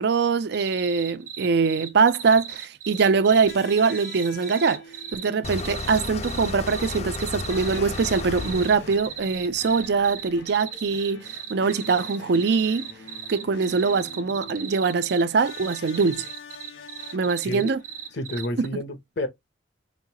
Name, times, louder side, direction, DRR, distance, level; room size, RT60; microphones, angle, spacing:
voice 1, 0.0-4.8 5.1-12.9 13.3-16.3 17.1-17.8 18.6-18.7, right 5 dB, 60° right, 0.5 m, -23 dB
sound 1, 0.5-18.7, right 8 dB, 40° right, 0.8 m, -37 dB
sound 2, 3.1-18.3, left 3 dB, 75° left, 1.7 m, -46 dB
sound 3, 5.4-10.4, left 3 dB, 35° left, 0.6 m, -34 dB
voice 2, 18.1-19.3, left 1 dB, 60° left, 0.9 m, -30 dB
5.2 x 2.7 x 2.8 m
head